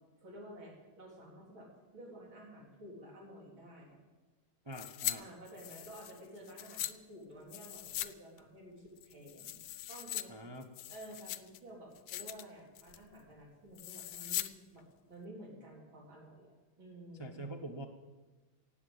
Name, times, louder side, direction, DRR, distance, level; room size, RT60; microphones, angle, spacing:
voice 1, 0.2-4.0 5.2-9.6 9.9-10.3 10.9-14.5 14.7-16.5 16.8-17.4, right 1 dB, 70° right, -2 dB, 4.5 m, -52 dB
voice 2, 4.6-5.3 10.3-10.7 17.2-17.9, right 1 dB, 35° right, 3 dB, 0.4 m, -44 dB
sound 1, 4.7-5.2 5.5-6.9 7.5-8.1 8.4-8.5 9.0-10.2 10.6-11.6 11.9-12.4 12.7-13.1 13.7-14.5 14.8-14.9, left 13 dB, 70° left, 1.1 m, -40 dB
17.0 x 8.2 x 8.1 m, 1.2 s
omnidirectional pair, 2.3 m